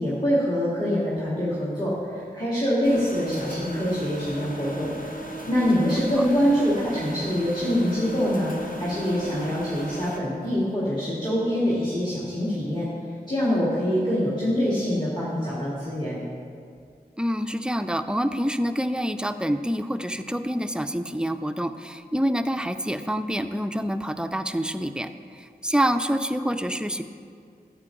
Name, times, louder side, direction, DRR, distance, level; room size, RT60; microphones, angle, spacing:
voice 1, 0.0-4.9 5.5-12.9 13.3-16.2, equal, 25° left, -8 dB, 1.9 m, -25 dB
sound 1, 2.8-10.2, right 1 dB, 55° left, 0.9 m, -37 dB
voice 2, 17.2-27.0, equal, 5° right, 9 dB, 0.4 m, -27 dB
9.8 x 7.6 x 3.7 m, 2.3 s
wide cardioid pair, 50°, 17 cm